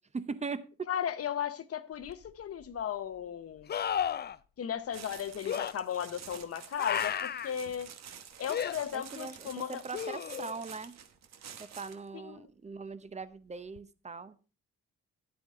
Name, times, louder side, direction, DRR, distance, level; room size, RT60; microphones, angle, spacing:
voice 1, 0.1-0.9 8.9-11.0 11.6-14.4, right 4 dB, 25° right, 0.7 m, -40 dB
voice 2, 0.9-3.7 4.6-7.9 8.4-9.8 12.1-12.5, left 9 dB, 50° left, 0.9 m, -36 dB
sound 1, 2.1-2.2 3.7-4.4 5.4-5.7 6.8-7.5 8.5-8.7 9.9-10.6 13.8-13.9, left 9 dB, 35° left, 0.4 m, -33 dB
sound 2, 4.9-12.1, right 8 dB, 60° right, 1.1 m, -49 dB
10.5 x 8.6 x 3.6 m
cardioid pair, 90°, 30 cm